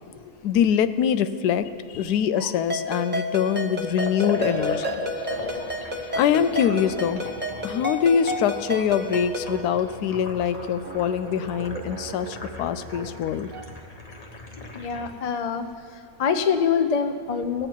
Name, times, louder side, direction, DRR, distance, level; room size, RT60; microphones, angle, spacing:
voice 1, 0.4-1.7 1.9-4.9 6.1-7.2 7.6-13.5, left 8 dB, 90° left, 12 dB, 1.1 m, -24 dB
sound 1, 2.3-4.2 4.5-14.0, right 5 dB, 65° right, 1.1 m, -42 dB
Ringtone, 2.7-9.6, equal, 10° right, 0.7 m, -31 dB
Liquid, 3.9-15.1, left 2 dB, 30° left, 0.8 m, -36 dB
voice 2, 14.7-15.6 15.9-17.7, left 6 dB, 50° left, 7 dB, 0.4 m, -25 dB
19.0 x 7.7 x 4.5 m, 2.3 s
omnidirectional pair, 1.6 m